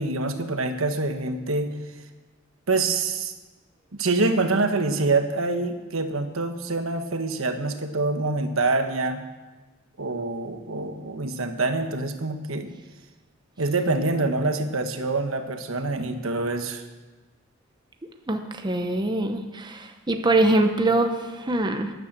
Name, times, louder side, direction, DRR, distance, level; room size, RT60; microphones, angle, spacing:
voice 1, 0.0-1.7 2.7-3.3 3.9-9.2 10.0-12.7 13.6-16.8, right 3 dB, 75° right, 7 dB, 1.2 m, -25 dB
voice 2, 18.3-21.9, right 2 dB, 20° right, 6 dB, 0.8 m, -23 dB
12.5 x 10.5 x 7.4 m, 1.2 s
head